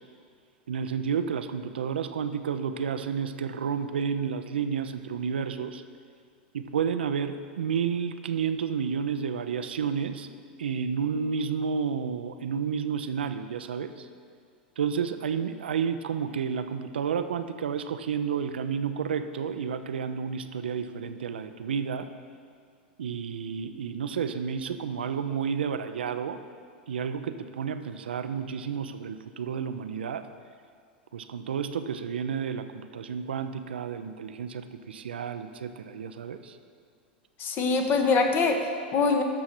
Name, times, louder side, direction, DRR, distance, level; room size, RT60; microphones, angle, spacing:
voice 1, 0.7-5.8 6.5-10.3 10.6-14.1 14.8-22.1 23.0-26.4 26.9-30.2 31.1-36.6, right 7 dB, 75° right, 9 dB, 0.5 m, -31 dB
voice 2, 37.4-39.2, left 4 dB, 35° left, 5 dB, 1.1 m, -24 dB
11.5 x 6.4 x 4.3 m, 2.1 s
hypercardioid pair, 95°, 6 cm